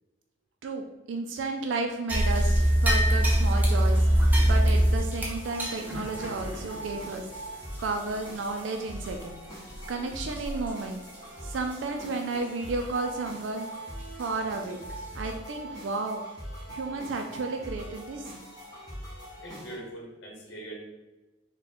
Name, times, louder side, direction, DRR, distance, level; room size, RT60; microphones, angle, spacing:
voice 1, 0.6-4.0 4.4-7.2 7.8-9.4 9.9-11.0 11.4-13.7 14.2-14.8 15.1-16.2 16.7-18.3, right 3 dB, 65° right, 3 dB, 0.4 m, -32 dB
sound 1, 2.1-8.7 9.0-9.1 9.7-9.9 10.4-10.7 11.0-11.1 11.7-11.8 14.2-14.3 14.9-15.0, equal, 10° right, 0.6 m, -24 dB
sound 2, 3.0-19.8, right 1 dB, 20° left, 1.3 m, -42 dB
voice 2, 19.4-20.8, right 1 dB, 70° left, -2 dB, 0.9 m, -41 dB
3.6 x 2.2 x 4.1 m, 1.1 s
head